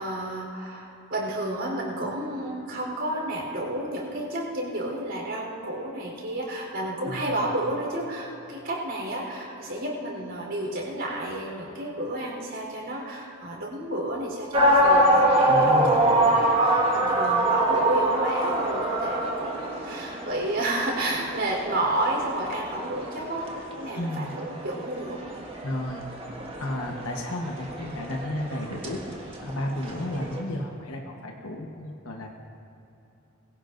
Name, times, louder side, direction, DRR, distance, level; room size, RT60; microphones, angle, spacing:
voice 1, 0.0-23.5 23.8-25.2, right 1 dB, 55° right, -2 dB, 3.9 m, -31 dB
voice 2, 7.1-7.4 15.5-16.2 23.9-24.3 25.6-26.0 26.6-29.0 29.4-32.3, left 1 dB, 75° left, 1 dB, 1.1 m, -32 dB
sound 1, 14.5-30.4, right 1 dB, 25° right, 1.7 m, -25 dB
22.0 x 17.0 x 2.6 m, 3.0 s
head